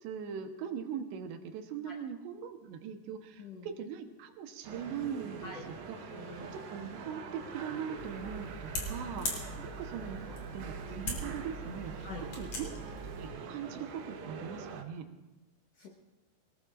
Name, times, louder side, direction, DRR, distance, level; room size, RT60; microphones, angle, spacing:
voice 1, 0.0-5.5 5.9-6.1 6.5-10.2 10.5-12.7 13.0-15.1, right 7 dB, 90° right, 5 dB, 3.3 m, -41 dB
sound 1, 4.6-14.8, right 5 dB, 70° right, 2.8 m, -45 dB
voice 2, 6.1-6.5 9.5-9.7 12.0-12.3 15.8-15.9, left 3 dB, 70° left, -2 dB, 1.6 m, -46 dB
sound 2, 8.0-13.3, equal, 40° left, 3.6 m, -41 dB
25.5 x 19.0 x 2.5 m, 1.1 s
omnidirectional pair, 4.8 m